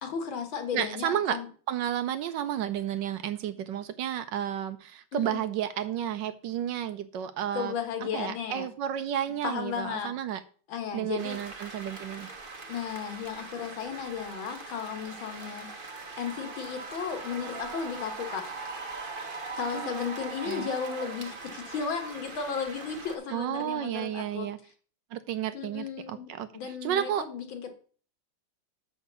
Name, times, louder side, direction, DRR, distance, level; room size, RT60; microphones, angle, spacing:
voice 1, 0.0-1.5 5.1-5.4 7.5-8.7 9.4-10.1 10.7-11.4 12.7-15.7 16.2-18.5 19.6-24.5 25.5-27.7, left 6 dB, 75° left, 6 dB, 2.1 m, -34 dB
voice 2, 0.7-1.4 1.7-7.7 8.1-10.4 10.9-12.3 20.4-20.7 23.3-24.6 25.1-27.3, right 10 dB, 75° right, 12 dB, 1.1 m, -32 dB
sound 1, 11.2-23.2, right 4 dB, 30° right, 1.0 m, -41 dB
6.4 x 5.8 x 6.9 m, 0.42 s
omnidirectional pair, 2.2 m